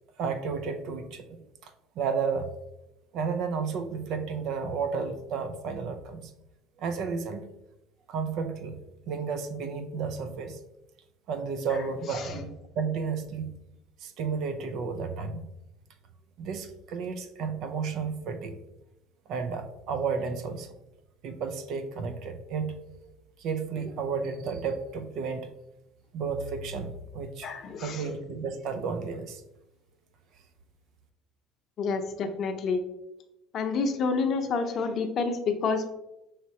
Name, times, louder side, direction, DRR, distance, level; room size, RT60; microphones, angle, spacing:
voice 1, 0.2-1.7 2.0-2.5 3.1-6.3 6.8-7.5 8.1-10.6 11.3-12.5 12.8-13.5 14.0-15.5 16.4-18.6 19.3-20.7 21.2-23.0 23.4-25.5 26.1-27.5 27.8-29.4, right 5 dB, 60° right, 9 dB, 0.5 m, -32 dB
voice 2, 27.4-28.1 31.8-32.8 33.5-35.9, left 4 dB, 50° left, 7 dB, 0.6 m, -28 dB
5.7 x 3.2 x 2.8 m, 0.91 s
hypercardioid pair, 70°, 0 cm